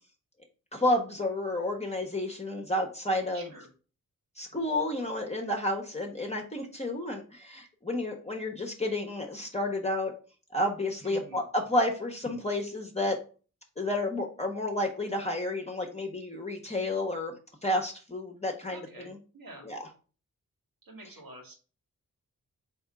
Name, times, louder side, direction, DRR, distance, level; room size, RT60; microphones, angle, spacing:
voice 1, 0.7-3.5 4.4-10.1 10.5-13.2 13.8-17.4 17.6-19.2 19.6-19.8, left 1 dB, 20° left, 2 dB, 1.0 m, -31 dB
voice 2, 3.3-3.7 11.0-11.4 18.7-19.7 20.8-21.5, right 1 dB, 80° right, 0 dB, 1.7 m, -48 dB
3.5 x 3.1 x 4.7 m, 0.36 s
cardioid pair, 50°, 34 cm